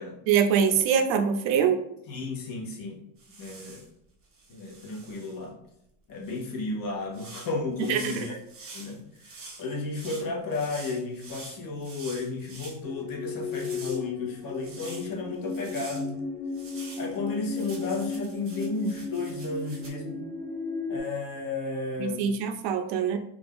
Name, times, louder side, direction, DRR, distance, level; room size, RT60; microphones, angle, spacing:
voice 1, 0.3-1.8 7.9-8.3 22.0-23.2, right 7 dB, 65° right, 5 dB, 0.5 m, -24 dB
voice 2, 2.1-3.0 3.4-3.8 4.5-5.6 6.1-8.4 8.7-16.2 17.0-20.2 20.9-22.2, left 3 dB, 45° left, -1 dB, 0.8 m, -33 dB
sound 1, 3.2-3.9 4.3-5.4 6.2-6.5 7.1-12.8 13.3-15.1 15.5-16.1 16.5-19.9, right 3 dB, 25° right, 0.7 m, -46 dB
sound 2, 12.8-21.0, left 4 dB, ahead, 0.3 m, -35 dB
2.5 x 2.4 x 3.4 m, 0.78 s
cardioid pair, 135°, 49 cm